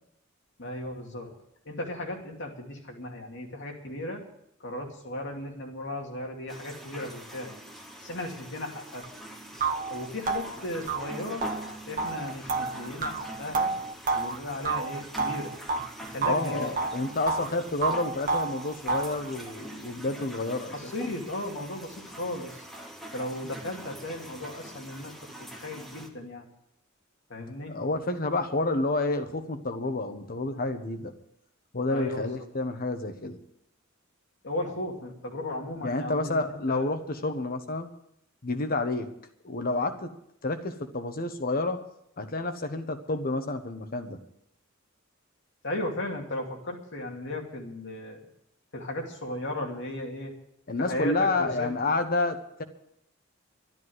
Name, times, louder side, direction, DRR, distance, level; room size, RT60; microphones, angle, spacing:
voice 1, 0.6-1.3 1.7-4.2 4.6-7.5 8.0-9.0 9.9-11.4 11.9-13.7 14.1-15.5 16.0-16.7 20.7-22.6 23.1-26.5 27.3-27.7 31.9-32.4 34.4-36.9 45.6-48.3 48.7-50.3 50.8-51.7, left 1 dB, 60° left, 1 dB, 2.6 m, -36 dB
sound 1, 6.5-26.1, right 1 dB, ahead, 1.8 m, -44 dB
sound 2, 9.0-9.1 9.6-15.9 16.2-17.5 17.8-19.2, right 4 dB, 40° right, 1.0 m, -30 dB
voice 2, 16.2-20.9 27.7-31.1 31.7-33.4 35.8-37.9 38.4-39.1 39.4-40.1 40.4-41.8 42.2-44.2 50.7-52.6, left 2 dB, 45° left, 7 dB, 1.2 m, -29 dB
13.0 x 10.5 x 7.9 m, 0.76 s
head